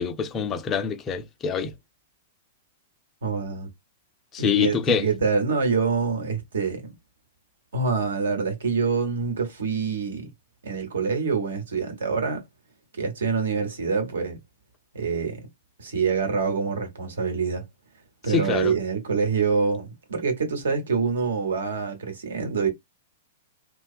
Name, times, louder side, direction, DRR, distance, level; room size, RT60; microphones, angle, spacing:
voice 1, 0.0-1.7 4.3-5.1 18.3-18.7, left 7 dB, 25° left, 0.5 m, -25 dB
voice 2, 3.2-3.7 4.4-6.9 7.7-10.3 10.6-12.4 13.0-14.4 14.9-15.4 15.8-17.6 18.2-22.7, right 5 dB, 65° right, 1.1 m, -26 dB
2.7 x 2.2 x 2.5 m
figure-of-eight pair, 100°, 0 cm